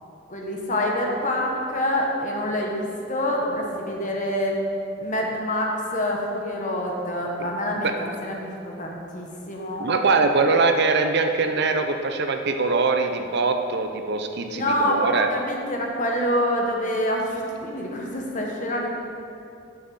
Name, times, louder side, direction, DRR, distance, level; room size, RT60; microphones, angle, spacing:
voice 1, 0.3-4.6 5.0-7.9 8.2-9.9 14.5-18.9, equal, 40° left, 0 dB, 1.4 m, -26 dB
voice 2, 9.8-15.3, right 3 dB, 60° right, 6 dB, 0.7 m, -22 dB
9.5 x 6.3 x 5.5 m, 2.5 s
head